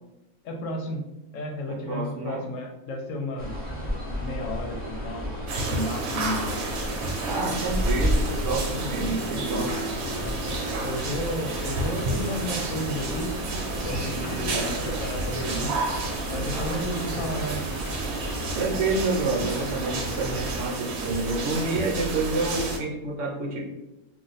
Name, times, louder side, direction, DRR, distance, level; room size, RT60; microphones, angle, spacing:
voice 1, 0.4-1.0 1.3-3.5 4.1-5.3 5.7-6.6 9.0-9.7 10.2-10.4 10.8-13.4 13.8-15.8 16.3-17.6, left 1 dB, 75° left, 3 dB, 0.9 m, -32 dB
voice 2, 1.7-2.4 7.3-9.7 18.5-23.6, right 3 dB, 65° right, -2 dB, 1.0 m, -28 dB
sound 1, 3.4-20.6, equal, 10° right, 0.4 m, -33 dB
sound 2, 5.5-22.8, right 2 dB, 90° right, 1.1 m, -31 dB
sound 3, 10.2-20.5, right 1 dB, 50° left, 0.4 m, -41 dB
2.5 x 2.1 x 3.9 m, 0.97 s
omnidirectional pair, 1.4 m